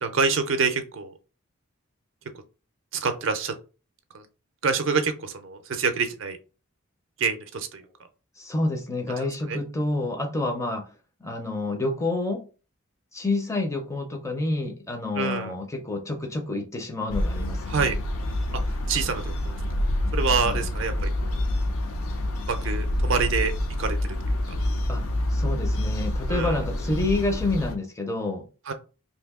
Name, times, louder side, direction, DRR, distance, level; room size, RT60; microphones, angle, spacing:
voice 1, 0.0-1.1 2.9-3.5 4.1-4.2 4.6-6.4 7.2-7.8 9.2-9.6 15.1-15.5 17.7-18.0 18.5-19.6 20.1-21.4 22.5-23.5 23.8-24.2 24.5-24.6 26.3-26.6 28.7-28.8, right 5 dB, 60° right, 0.4 m, -27 dB
voice 2, 8.4-10.9 11.2-12.4 13.1-17.8 20.4-20.6 24.9-25.0 25.3-28.4, left 2 dB, 15° left, 0.5 m, -28 dB
sound 1, 17.1-27.7, left 1 dB, 75° left, 0.5 m, -27 dB
2.8 x 2.6 x 3.5 m
head